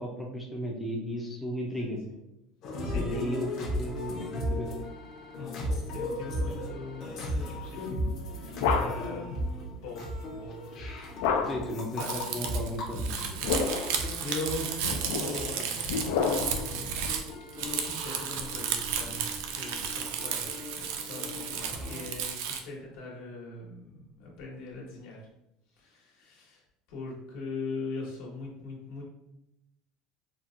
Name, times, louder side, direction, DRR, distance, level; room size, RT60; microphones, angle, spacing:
voice 1, 0.0-2.1 2.9-4.7 8.8-8.9 11.4-13.2, equal, ahead, -2 dB, 0.4 m, -35 dB
voice 2, 1.8-2.2 2.8-3.4 5.3-8.0 8.2-11.0 11.3-11.4 12.0-12.1 14.2-17.0 17.5-25.3 25.7-26.6 26.9-29.0, left 2 dB, 70° left, -3 dB, 1.2 m, -41 dB
sound 1, 2.6-22.1, equal, 40° left, 0.7 m, -37 dB
sound 2, 8.0-9.2 11.2-11.8 13.2-14.0 14.8-16.7, left 5 dB, 90° left, 0.4 m, -30 dB
Crumpling crinkling, 12.0-22.6, right 7 dB, 70° right, 0.4 m, -34 dB
4.2 x 2.1 x 2.5 m, 0.86 s
cardioid pair, 175°, 0 cm